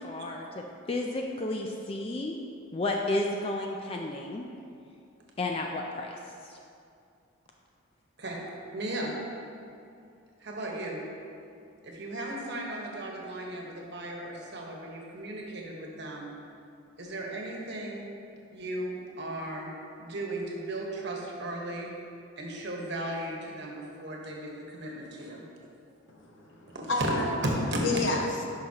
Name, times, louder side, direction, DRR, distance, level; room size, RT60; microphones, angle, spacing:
voice 1, 0.0-2.3 2.7-4.5 5.4-6.2 6.5-6.6, left 2 dB, 30° left, 1 dB, 0.3 m, -32 dB
voice 2, 8.7-9.1 10.4-11.0 11.8-16.3 17.0-18.0 18.5-19.7 20.0-21.9 22.4-25.4 26.7-27.1 27.4-27.8, right 1 dB, 55° right, -2 dB, 1.2 m, -36 dB
voice 3, 26.1-27.3 27.8-28.4, left 2 dB, 65° left, 0 dB, 1.0 m, -30 dB
11.0 x 5.6 x 2.9 m, 2.5 s
head